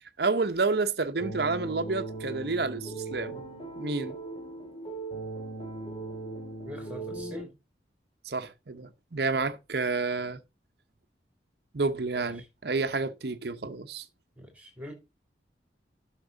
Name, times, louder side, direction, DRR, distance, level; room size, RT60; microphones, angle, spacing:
voice 1, 0.2-3.4 3.8-4.2 8.3-10.4 11.7-14.0, right 3 dB, 60° right, 0.8 m, -29 dB
sound 1, 1.2-7.4, right 2 dB, 30° left, 2.4 m, -38 dB
voice 2, 6.6-7.5 12.1-12.5 14.4-14.9, left 1 dB, 10° right, 3.1 m, -43 dB
12.0 x 6.0 x 3.9 m
head